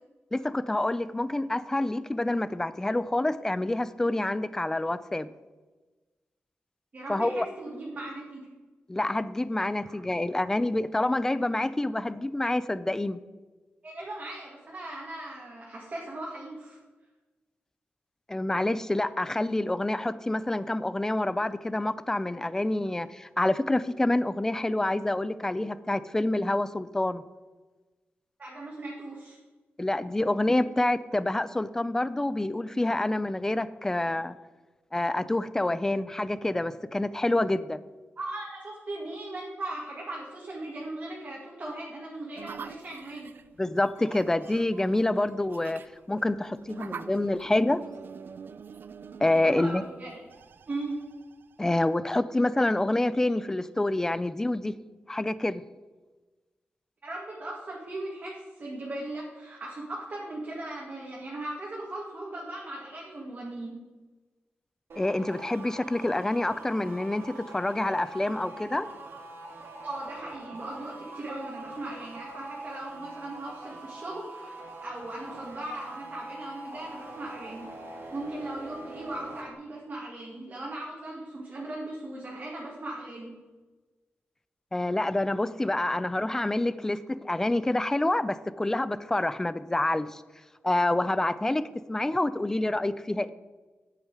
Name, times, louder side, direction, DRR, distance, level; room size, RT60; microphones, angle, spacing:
voice 1, 0.3-5.3 7.1-7.5 8.9-13.2 18.3-27.2 29.8-34.4 34.9-37.8 43.6-45.8 46.1-47.8 49.2-49.8 51.6-54.7 55.1-55.6 65.0-68.9 84.7-90.2 90.6-93.3, left 2 dB, 15° left, 15 dB, 0.4 m, -27 dB
voice 2, 6.9-8.5 9.8-10.0 10.4-10.5 13.8-16.8 28.4-29.4 38.2-43.3 49.4-50.1 50.7-51.0 57.0-63.7 69.8-77.7 78.1-83.3, right 2 dB, 35° right, -5 dB, 2.0 m, -38 dB
sound 1, 42.4-52.0, right 6 dB, 55° right, 0.3 m, -46 dB
sound 2, 64.9-79.5, right 2 dB, 75° right, 1.9 m, -44 dB
9.2 x 8.2 x 4.8 m, 1.2 s
wide cardioid pair, 150°, 4 cm